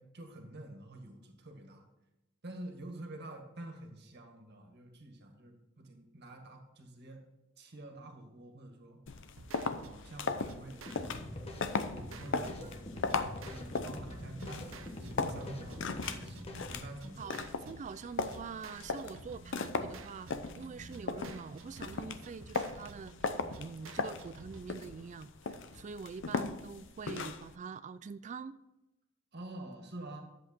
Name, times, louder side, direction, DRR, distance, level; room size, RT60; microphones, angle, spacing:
voice 1, 0.0-1.8 2.4-7.2 7.6-9.3 9.8-11.3 11.9-12.8 13.4-17.3 29.3-30.2, right 1 dB, 55° right, 3 dB, 1.8 m, -48 dB
sound 1, 9.1-27.5, left 4 dB, 65° left, 0.7 m, -38 dB
sound 2, 9.4-24.7, right 3 dB, 80° right, 0.9 m, -52 dB
sound 3, 10.9-16.8, left 1 dB, 30° left, 1.2 m, -45 dB
voice 2, 17.2-23.3 23.6-28.6, right 5 dB, 40° right, 14 dB, 0.3 m, -45 dB
11.0 x 7.7 x 4.4 m, 0.94 s
head